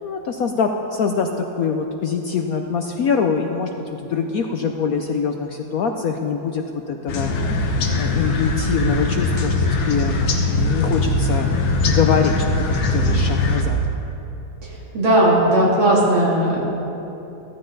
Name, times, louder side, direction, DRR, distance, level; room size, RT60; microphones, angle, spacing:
voice 1, 0.0-10.2 10.5-11.5 11.9-12.3 12.7-13.8, left 6 dB, 70° left, 4 dB, 0.8 m, -24 dB
sound 1, 7.1-13.6, left 2 dB, 90° left, 2.0 m, -21 dB
voice 2, 14.9-16.6, right 1 dB, 85° right, -5 dB, 3.5 m, -16 dB
14.5 x 14.5 x 3.9 m, 3.0 s
omnidirectional pair, 2.1 m